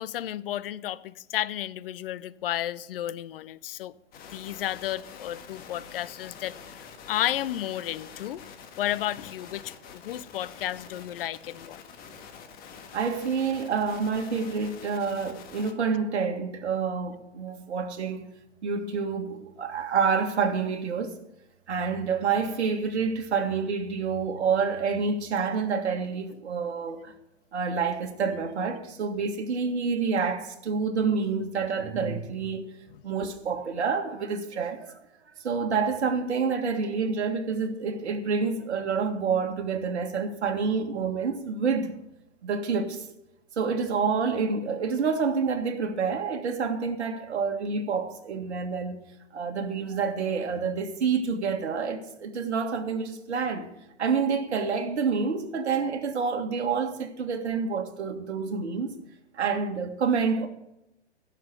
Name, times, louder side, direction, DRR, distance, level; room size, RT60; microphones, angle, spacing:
voice 1, 0.0-3.9 4.3-6.6 7.1-8.4 8.8-11.8, left 12 dB, 50° left, 0.7 m, -32 dB
sound 1, 4.1-15.7, left 6 dB, 25° left, 1.6 m, -46 dB
voice 2, 12.9-18.3 18.6-21.2 21.7-27.1 27.5-32.7 33.0-35.0 35.4-42.0 42.4-43.1 43.6-49.0 49.3-53.7 54.0-58.9 59.3-60.5, right 5 dB, 65° right, 2.0 m, -28 dB
16.0 x 6.8 x 6.8 m
hypercardioid pair, 120°, 36 cm